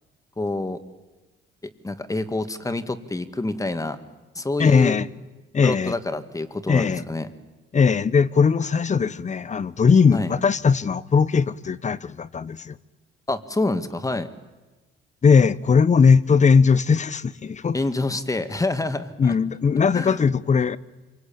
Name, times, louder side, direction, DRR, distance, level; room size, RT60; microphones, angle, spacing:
voice 1, 0.4-0.8 1.8-4.0 4.4-5.0 5.6-7.3 10.1-10.3 13.3-14.3 17.7-19.3 19.9-20.2, left 2 dB, 15° left, 2.2 m, -27 dB
voice 2, 4.6-5.1 5.5-6.0 6.7-7.0 7.7-12.7 15.2-17.8 19.2-20.8, left 5 dB, 35° left, 1.0 m, -19 dB
26.0 x 24.5 x 8.8 m
cardioid pair, 90°, 20 cm